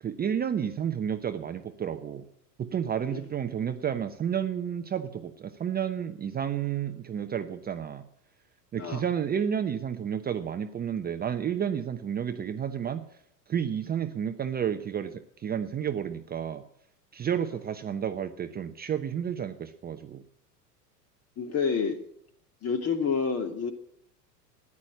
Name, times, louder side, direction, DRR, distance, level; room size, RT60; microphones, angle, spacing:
voice 1, 0.0-2.2 2.6-8.0 8.7-13.1 13.5-16.6 17.1-20.2, right 8 dB, 20° right, 7 dB, 0.8 m, -31 dB
voice 2, 21.4-22.0 22.6-23.7, left 6 dB, 30° left, 6 dB, 2.4 m, -28 dB
14.0 x 9.8 x 8.6 m, 0.72 s
hypercardioid pair, 90°, 48 cm